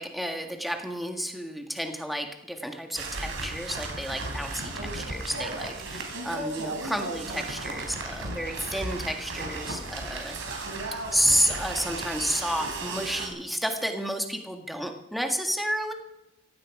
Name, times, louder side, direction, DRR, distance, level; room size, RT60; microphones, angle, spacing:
voice 1, 0.0-10.6 11.1-15.9, equal, ahead, 4 dB, 1.7 m, -31 dB
sound 1, 2.9-13.3, right 2 dB, 70° right, 3.9 m, -35 dB
16.0 x 15.5 x 4.9 m, 0.90 s
head